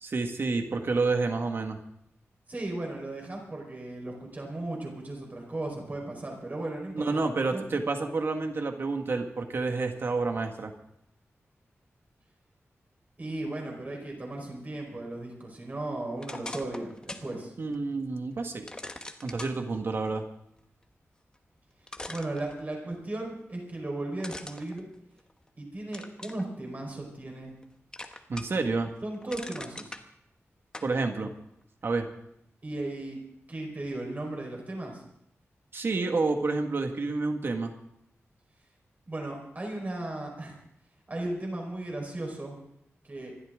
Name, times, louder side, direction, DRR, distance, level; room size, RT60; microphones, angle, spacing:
voice 1, 0.0-1.8 6.9-10.7 17.6-18.7 19.2-20.2 28.3-28.9 30.8-31.3 31.8-32.1 35.7-37.7, right 3 dB, 50° right, 5 dB, 1.8 m, -29 dB
voice 2, 2.5-7.7 13.2-17.5 22.1-24.9 25.6-27.5 29.0-30.0 32.6-33.2 33.5-35.0 39.1-40.6 41.1-42.5 43.0-43.3, right 2 dB, 35° right, 1 dB, 4.7 m, -36 dB
sound 1, 16.2-17.3 17.7-17.8 18.7-19.5 21.3-21.4 21.9-23.0 24.2-25.5 25.9-26.4 27.0-27.6 27.9-28.7 29.0-30.0 30.7-30.9, left 2 dB, 15° left, 1.1 m, -41 dB
26.0 x 12.5 x 3.8 m, 0.76 s
wide cardioid pair, 165°, 5 cm